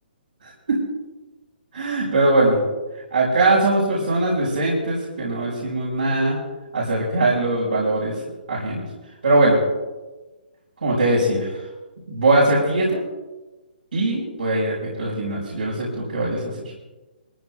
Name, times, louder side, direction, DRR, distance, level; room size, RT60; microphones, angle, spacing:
voice 1, 1.7-2.6 3.1-6.4 6.7-8.1 8.5-8.8 9.2-9.6 10.8-11.5 12.1-13.0 13.9-16.4, right 2 dB, 80° right, -7 dB, 5.0 m, -20 dB
22.0 x 15.0 x 2.4 m, 1.2 s
hypercardioid pair, 140°, 5 cm